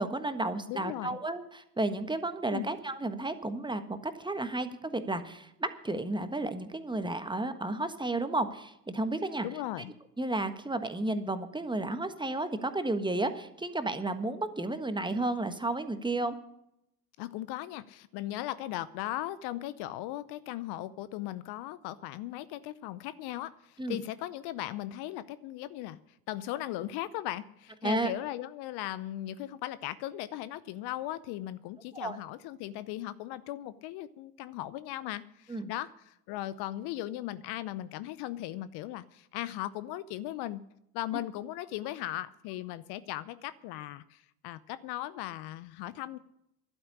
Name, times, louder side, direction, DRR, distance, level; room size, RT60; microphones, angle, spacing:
voice 1, 0.0-9.5 10.2-16.3 23.8-24.0 27.8-28.1 32.0-32.2 35.5-35.7, right 2 dB, 10° right, 9 dB, 1.4 m, -32 dB
voice 2, 0.7-1.2 2.5-2.7 9.4-9.9 17.2-26.0 26.3-40.6 40.9-46.2, left 14 dB, 55° left, 16 dB, 0.7 m, -38 dB
12.0 x 8.7 x 9.9 m, 0.79 s
hypercardioid pair, 65°, 48 cm